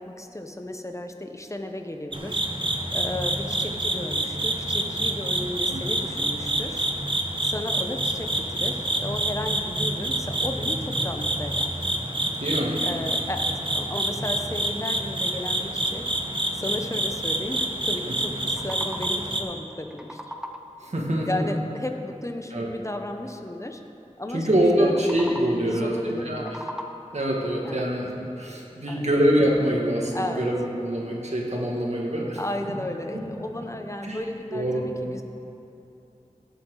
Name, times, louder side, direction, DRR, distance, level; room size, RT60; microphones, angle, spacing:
voice 1, 0.0-2.4 2.9-6.9 7.4-11.9 12.8-16.1 16.5-20.2 21.3-23.8 24.2-25.0 25.6-26.7 27.6-28.0 28.9-29.1 30.1-30.5 32.4-35.2, left 1 dB, 25° left, 5 dB, 1.0 m, -34 dB
sound 1, 2.1-19.4, right 1 dB, 40° right, 1.1 m, -27 dB
voice 2, 12.4-12.8 20.8-21.5 22.5-22.7 24.3-26.4 27.1-28.1 28.4-32.4 34.0-34.2 34.5-34.8, equal, 65° right, -3 dB, 2.2 m, -24 dB
sound 2, 18.5-19.4 19.7-20.9 24.8-25.7 26.2-27.3, left 1 dB, 5° right, 0.8 m, -39 dB
17.0 x 8.3 x 4.0 m, 2.8 s
wide cardioid pair, 45°, 12 cm